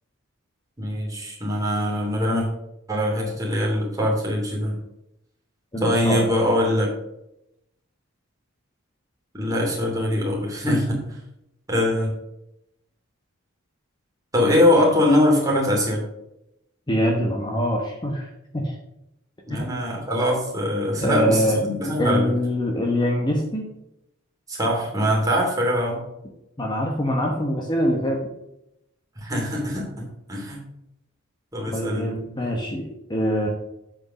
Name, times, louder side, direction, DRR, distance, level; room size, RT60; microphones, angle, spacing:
voice 1, 0.8-2.4 2.9-4.7 5.8-6.9 9.3-11.2 11.7-12.1 14.3-16.0 19.5-22.3 24.5-26.0 29.2-30.6 31.5-32.1, left 1 dB, 15° right, -2 dB, 2.8 m, -22 dB
voice 2, 5.7-6.3 16.9-18.8 19.5-19.7 21.0-21.6 22.0-23.6 26.6-28.2 31.7-33.5, equal, 20° left, 0 dB, 1.1 m, -24 dB
8.0 x 5.2 x 6.2 m, 0.83 s
head